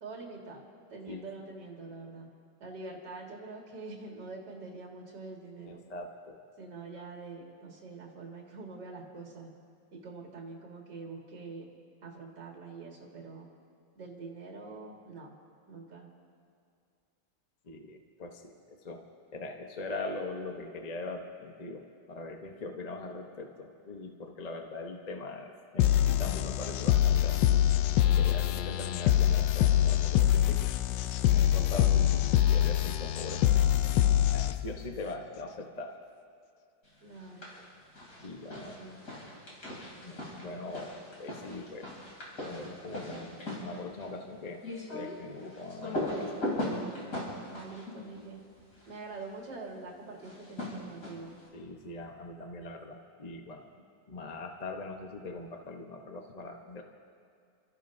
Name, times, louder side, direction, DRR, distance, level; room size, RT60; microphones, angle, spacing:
voice 1, 0.0-2.3 2.6-5.8 6.6-9.5 9.9-11.7 12.0-13.5 13.9-15.3 15.7-16.1 37.0-37.5 38.5-39.0 47.5-48.4 48.9-51.4, right 3 dB, 65° right, -1 dB, 2.5 m, -45 dB
voice 2, 5.7-6.4 17.6-19.0 19.3-27.7 28.1-30.7 31.3-33.6 34.3-36.0 38.2-38.8 40.0-40.9 41.2-41.9 42.4-44.6 44.9-46.3 51.5-53.7 54.1-56.8, left 2 dB, 30° left, 3 dB, 0.8 m, -41 dB
sound 1, 25.8-34.8, left 11 dB, 80° left, 1.2 m, -25 dB
sound 2, 37.1-37.7 38.0-49.0 50.2-51.4, left 1 dB, 45° left, 3.8 m, -39 dB
29.5 x 14.0 x 2.7 m, 2.4 s
omnidirectional pair, 2.0 m